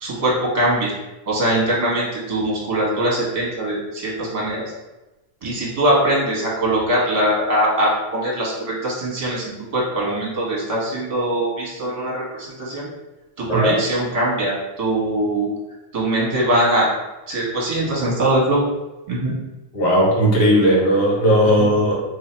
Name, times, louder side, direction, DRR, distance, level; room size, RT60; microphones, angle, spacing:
voice 1, 0.0-0.9 1.3-4.6 5.4-12.9 13.4-15.5 15.9-16.9 17.3-18.6 19.1-19.4 21.6-21.7, right 1 dB, 25° right, -4 dB, 1.0 m, -21 dB
voice 2, 19.7-21.9, equal, 90° left, -4 dB, 1.8 m, -16 dB
3.0 x 2.8 x 4.3 m, 1.0 s
omnidirectional pair, 1.7 m